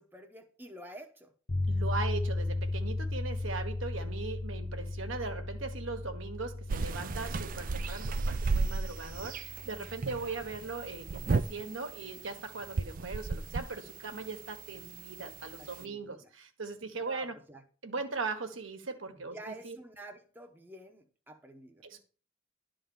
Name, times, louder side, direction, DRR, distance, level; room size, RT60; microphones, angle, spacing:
voice 1, 0.0-1.3 10.1-10.4 15.2-15.3 15.6-16.3 17.0-17.6 19.3-21.9, right 1 dB, 10° right, 0.9 m, -49 dB
sound 1, 1.5-11.6, left 2 dB, 45° left, 1.0 m, -36 dB
voice 2, 1.7-17.3 17.8-19.8 21.8-22.0, right 3 dB, 70° right, 1.3 m, -39 dB
sound 2, 6.7-15.8, right 4 dB, 45° right, 0.4 m, -35 dB
11.0 x 3.8 x 7.1 m
head